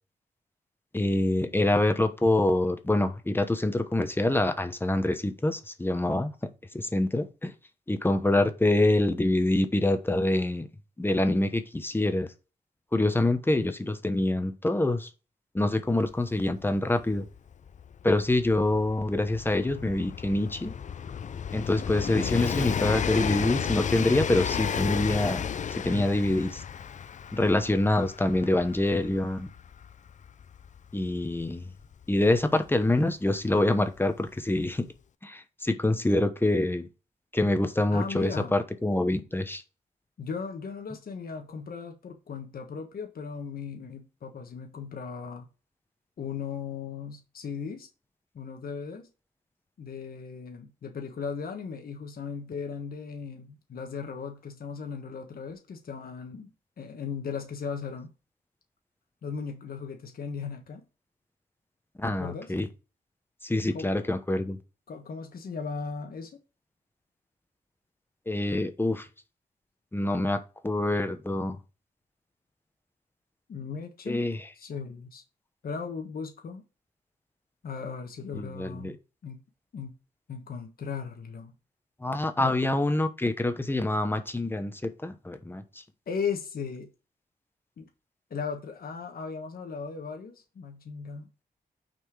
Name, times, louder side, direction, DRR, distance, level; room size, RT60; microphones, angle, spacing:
voice 1, 0.9-6.3 6.7-7.5 7.9-10.7 11.0-12.3 12.9-15.1 15.5-17.2 18.0-20.7 21.5-25.4 25.7-26.6 27.3-29.5 30.9-31.6 32.1-34.9 35.2-36.9 37.3-39.6 62.0-62.7 63.4-64.6 68.3-69.1 69.9-71.6 74.1-74.4 78.3-78.9 82.0-85.6, left 1 dB, 15° left, 1.0 m, -26 dB
Train, 16.1-16.2 16.4-33.0 34.0-34.1, left 7 dB, 50° left, 0.4 m, -33 dB
voice 2, 37.9-38.6 40.2-45.5 46.2-47.9 48.3-49.1 49.8-58.1 59.2-60.8 62.0-62.5 63.7-63.9 64.9-66.3 73.5-74.2 74.5-75.2 75.6-76.6 77.6-79.0 79.2-79.4 79.7-79.9 80.3-81.5 82.4-82.7 86.1-86.9 87.8-87.9 88.3-91.4, left 5 dB, 70° left, 1.3 m, -37 dB
6.3 x 4.3 x 4.7 m
wide cardioid pair, 105°, 16 cm